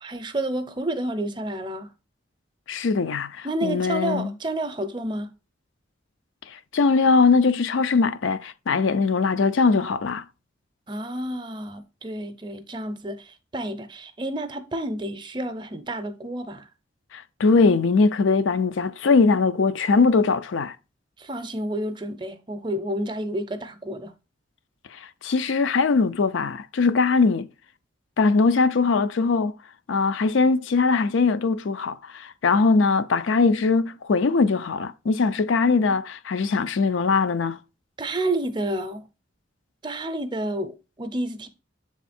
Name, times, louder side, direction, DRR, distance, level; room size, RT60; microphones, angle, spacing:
voice 1, 0.0-1.9 3.4-5.3 10.9-16.7 21.2-24.1 38.0-39.1 39.8-41.5, right 1 dB, 25° right, 0.6 m, -30 dB
voice 2, 2.7-4.3 6.5-10.2 17.1-20.8 24.9-27.5 28.2-29.5 29.9-37.6, left 4 dB, 80° left, 0.5 m, -21 dB
7.0 x 3.7 x 4.2 m
head